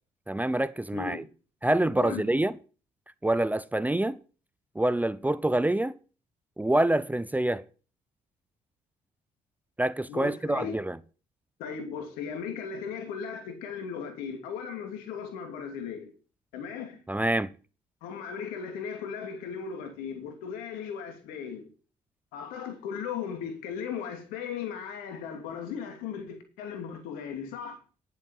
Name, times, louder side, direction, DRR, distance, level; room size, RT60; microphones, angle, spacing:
voice 1, 0.3-1.2 1.6-2.5 3.2-4.2 4.8-6.0 6.6-7.6 9.8-11.0 17.1-17.5, right 1 dB, 10° right, 0.7 m, -26 dB
voice 2, 0.9-1.2 2.0-2.2 10.1-10.8 11.6-16.1 16.5-17.0 18.0-21.7 22.3-27.8, left 7 dB, 85° left, 2.7 m, -37 dB
11.0 x 8.2 x 5.7 m
supercardioid pair, 60°, 15 cm